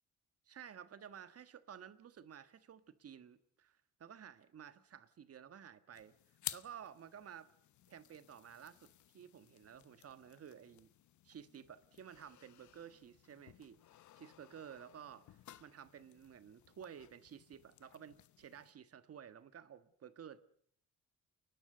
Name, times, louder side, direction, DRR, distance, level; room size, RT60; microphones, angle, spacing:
voice 1, 0.5-6.1 6.5-7.5 7.9-10.9 11.2-13.8 14.1-20.4, right 8 dB, 50° right, 1.4 m, -53 dB
sound 1, 5.9-18.7, left 13 dB, 70° left, 0.9 m, -54 dB
29.0 x 12.0 x 9.5 m
cardioid pair, 90°, 30 cm